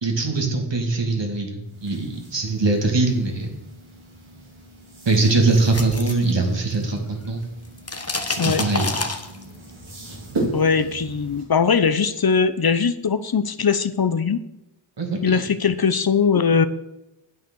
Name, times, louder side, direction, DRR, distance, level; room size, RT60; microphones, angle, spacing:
voice 1, 0.0-3.5 5.0-7.4 8.3-8.9 15.0-15.4, right 3 dB, 65° right, 2 dB, 2.5 m, -22 dB
sound 1, 1.6-11.4, right 2 dB, 85° right, 2.9 m, -37 dB
sound 2, 5.3-7.0 7.2-9.7, left 3 dB, 30° left, 1.3 m, -29 dB
voice 2, 10.5-14.4 15.2-16.7, left 6 dB, 50° left, 12 dB, 0.8 m, -20 dB
9.3 x 8.3 x 6.3 m, 0.90 s
cardioid pair, 45°, 46 cm